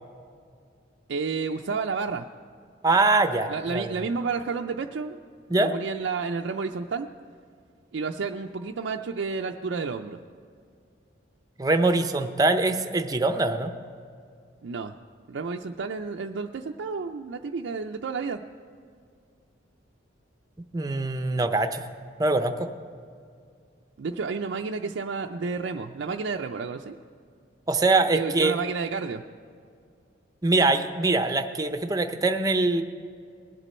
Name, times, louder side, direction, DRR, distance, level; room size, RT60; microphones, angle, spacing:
voice 1, 1.1-2.3 3.5-5.2 5.6-7.1 7.9-10.2 14.6-14.9 15.3-18.4 24.0-27.0 28.1-29.2, right 4 dB, 70° right, 3 dB, 0.4 m, -31 dB
voice 2, 2.8-4.0 5.5-5.7 11.6-13.7 20.7-21.9 22.2-22.7 27.7-28.6 30.4-32.8, right 2 dB, 20° right, 7 dB, 0.6 m, -23 dB
20.5 x 8.2 x 4.3 m, 2.2 s
head